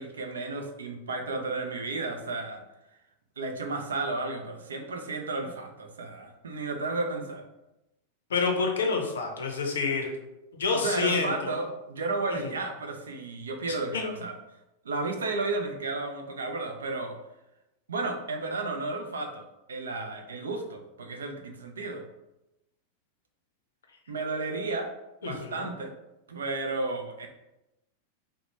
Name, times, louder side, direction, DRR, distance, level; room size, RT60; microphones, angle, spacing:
voice 1, 0.0-2.6 3.4-7.4 10.7-14.3 14.8-17.2 17.9-22.0 24.1-24.9 25.2-25.9 26.3-27.3, right 3 dB, 70° right, 4 dB, 0.4 m, -33 dB
voice 2, 8.3-10.1 10.5-11.6 13.7-14.1 25.2-25.7, left 4 dB, 65° left, 2 dB, 0.6 m, -28 dB
2.9 x 2.1 x 3.0 m, 0.93 s
figure-of-eight pair, 90°, 0 cm